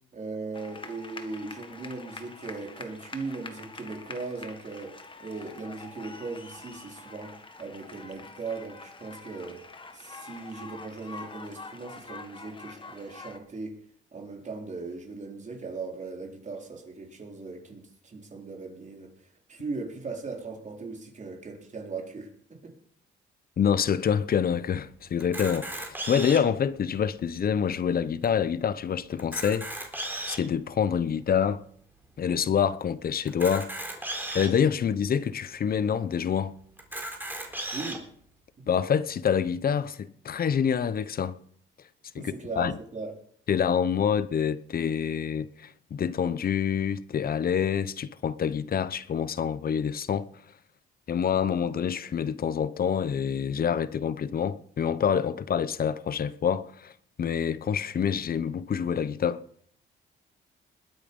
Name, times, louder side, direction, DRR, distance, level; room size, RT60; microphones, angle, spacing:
voice 1, 0.1-9.7 9.9-13.8 14.1-19.1 19.5-22.8 37.7-38.1 38.6-38.7 42.2-43.1, right 3 dB, 40° right, 4.0 m, -38 dB
sound 1, 0.5-13.4, left 3 dB, 25° left, 1.8 m, -45 dB
voice 2, 23.6-29.7 30.3-31.6 32.2-33.7 34.3-36.5 38.7-41.4 42.1-42.8 43.5-50.3 51.1-56.9 57.2-59.4, left 7 dB, 50° left, 0.9 m, -27 dB
Camera, 25.2-26.6 27.2-27.3 27.6-27.7 28.2-28.3 29.1-30.5 31.1-31.2 33.3-34.5 35.2-35.3 35.6-35.7 36.8-38.0, right 1 dB, 10° right, 3.9 m, -35 dB
21.0 x 8.7 x 5.5 m
cardioid pair, 90°, 20 cm